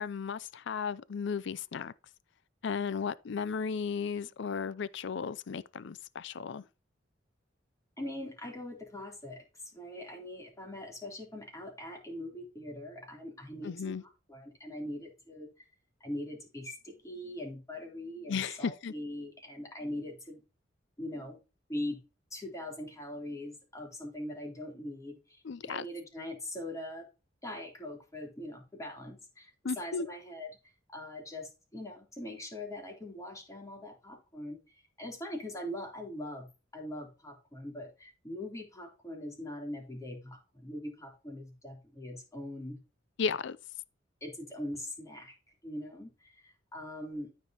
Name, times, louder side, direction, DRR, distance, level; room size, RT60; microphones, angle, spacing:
voice 1, 0.0-1.9 2.6-6.6 13.6-14.0 18.3-18.9 25.4-25.9 29.6-30.1 43.2-43.6, left 5 dB, 65° left, 0.5 m, -35 dB
voice 2, 8.0-9.4 9.7-15.5 16.0-20.4 21.0-21.4 21.7-22.0 22.3-27.1 27.4-30.5 30.9-34.6 35.0-36.5 36.7-42.8 44.2-45.4 45.6-47.3, left 1 dB, 15° left, 3.2 m, -42 dB
13.5 x 5.3 x 2.9 m
head